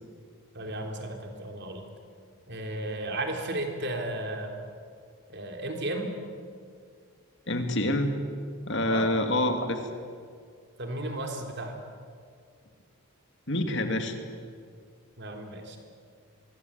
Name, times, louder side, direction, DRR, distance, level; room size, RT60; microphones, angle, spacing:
voice 1, 0.5-1.8 2.5-4.5 5.3-6.1 8.9-9.1 10.8-11.8 15.2-15.8, right 1 dB, 50° right, 3 dB, 3.6 m, -34 dB
voice 2, 7.5-8.1 8.6-9.9 13.5-14.2, left 1 dB, 55° left, 6 dB, 2.5 m, -27 dB
24.0 x 22.5 x 8.9 m, 2.2 s
head